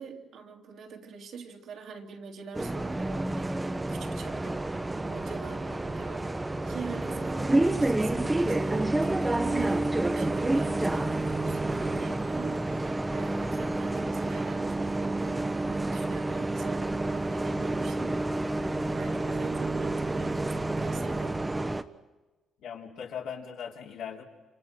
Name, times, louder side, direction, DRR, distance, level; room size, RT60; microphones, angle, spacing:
voice 1, 0.0-18.2 18.5-21.4, right 5 dB, 70° right, 2 dB, 3.2 m, -44 dB
Bus, 2.5-21.8, right 2 dB, 15° right, 1.1 m, -29 dB
voice 2, 22.6-24.2, left 7 dB, 80° left, 0 dB, 3.9 m, -39 dB
29.0 x 28.0 x 6.2 m, 1.2 s
cardioid pair, 90°, 0 cm